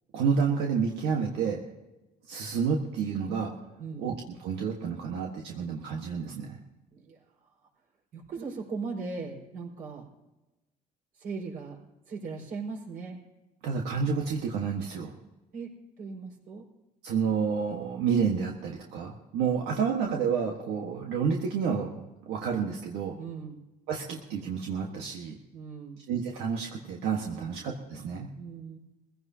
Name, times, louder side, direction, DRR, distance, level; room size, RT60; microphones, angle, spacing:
voice 1, 0.1-1.6 2.3-3.5 4.0-6.6 13.6-15.1 17.0-23.1 23.9-25.4 26.1-28.3, right 6 dB, 85° right, 0 dB, 1.5 m, -30 dB
voice 2, 8.1-10.1 11.2-11.8 12.1-13.2 15.5-16.6 23.2-23.6 25.5-26.0 27.4-27.6 28.4-28.8, right 4 dB, 55° right, -2 dB, 5.0 m, -38 dB
22.5 x 16.0 x 2.9 m, 1.1 s
cardioid pair, 110°, 17 cm